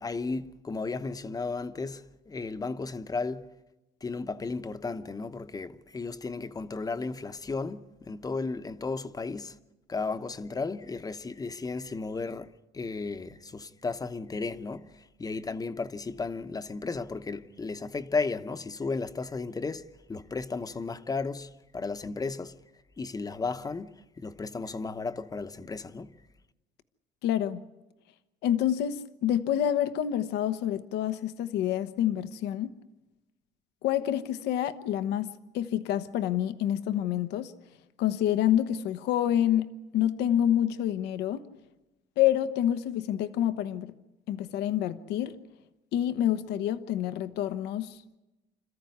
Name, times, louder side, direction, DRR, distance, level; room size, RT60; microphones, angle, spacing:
voice 1, 0.0-3.5 4.0-9.6 9.9-22.6 23.0-26.2, left 4 dB, 20° left, 0.9 m, -34 dB
voice 2, 27.2-27.6 28.4-32.7 33.8-35.3 35.5-37.5 38.0-41.4 42.2-43.9 44.3-45.4 45.9-48.0, left 11 dB, 85° left, 1.0 m, -27 dB
26.5 x 14.0 x 9.5 m
cardioid pair, 110°, 17 cm